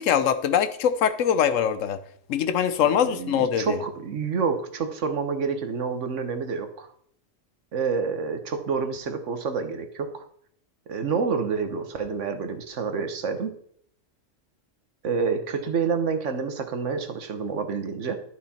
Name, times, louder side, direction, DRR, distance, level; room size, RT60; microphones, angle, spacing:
voice 1, 0.0-2.0 2.3-3.8, left 8 dB, 80° left, 1.1 m, -23 dB
voice 2, 3.0-6.9 7.7-10.3 10.9-13.5 15.0-18.2, right 5 dB, 70° right, 1.4 m, -28 dB
11.5 x 6.3 x 4.3 m
omnidirectional pair, 1.3 m